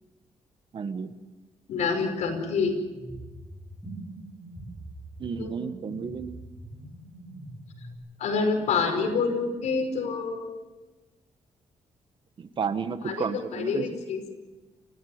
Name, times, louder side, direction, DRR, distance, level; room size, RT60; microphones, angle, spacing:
voice 1, 0.7-1.1 5.2-6.4 12.4-13.8, right 6 dB, 45° right, 11 dB, 1.3 m, -32 dB
voice 2, 1.7-2.8 5.4-5.5 8.2-10.5 13.0-14.2, left 4 dB, 85° left, 4 dB, 5.3 m, -27 dB
sound 1, 2.9-7.9, right 1 dB, ahead, 6.5 m, -43 dB
29.5 x 15.0 x 7.9 m, 1.2 s
cardioid pair, 130°, 12 cm